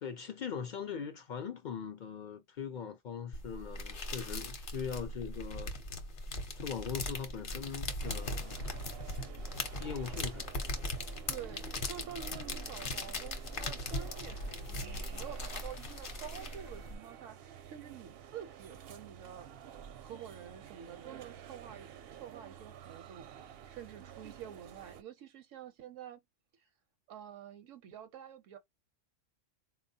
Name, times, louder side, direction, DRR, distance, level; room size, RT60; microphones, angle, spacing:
voice 1, 0.0-5.7 6.6-8.6 9.8-10.5, left 7 dB, 70° left, 0.4 m, -41 dB
sound 1, 3.3-16.9, left 2 dB, 50° left, 0.8 m, -39 dB
sound 2, 8.0-25.0, right 9 dB, 65° right, 0.6 m, -51 dB
voice 2, 11.3-19.5 20.0-23.3 23.7-26.2 27.1-28.6, right 9 dB, 80° right, 0.9 m, -48 dB
4.0 x 2.3 x 2.7 m
omnidirectional pair, 1.3 m